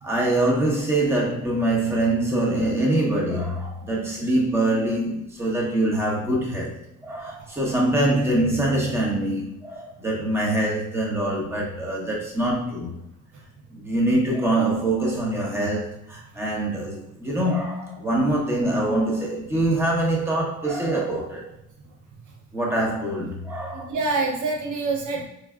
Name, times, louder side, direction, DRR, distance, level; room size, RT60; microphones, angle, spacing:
voice 1, 0.0-6.8 7.0-13.0 13.7-21.5 22.5-23.9, right 1 dB, 10° right, -3 dB, 0.9 m, -24 dB
voice 2, 21.9-22.2 23.7-25.3, right 3 dB, 75° right, 1 dB, 0.8 m, -27 dB
4.6 x 2.0 x 2.4 m, 0.78 s
cardioid pair, 90°, 30 cm